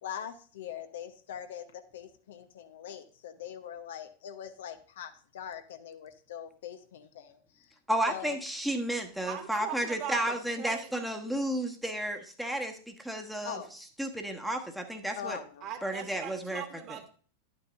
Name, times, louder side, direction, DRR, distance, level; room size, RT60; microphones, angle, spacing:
voice 1, 0.0-7.7 8.1-8.4 13.4-13.7 15.2-15.7, left 9 dB, 60° left, 9 dB, 0.9 m, -42 dB
voice 2, 7.9-13.6 14.0-15.4 15.8-16.6, right 1 dB, ahead, 4 dB, 1.3 m, -32 dB
voice 3, 9.2-10.9 15.6-17.1, right 9 dB, 35° right, 6 dB, 1.7 m, -40 dB
11.5 x 8.8 x 2.6 m, 0.42 s
figure-of-eight pair, 90°, 0 cm